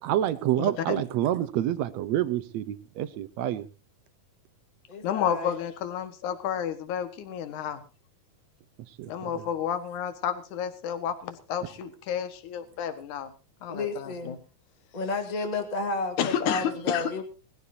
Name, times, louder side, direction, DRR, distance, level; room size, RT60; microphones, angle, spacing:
voice 1, 0.0-3.7 9.0-9.4, right 12 dB, 70° right, 1.7 m, -28 dB
voice 2, 0.6-1.0 5.0-7.8 9.1-13.3 13.6-14.4 16.2-17.2, left 9 dB, 65° left, 2.9 m, -31 dB
voice 3, 4.9-5.6 13.7-14.4 14.9-17.2, left 3 dB, 15° left, 1.9 m, -31 dB
20.5 x 15.0 x 2.8 m
omnidirectional pair, 3.9 m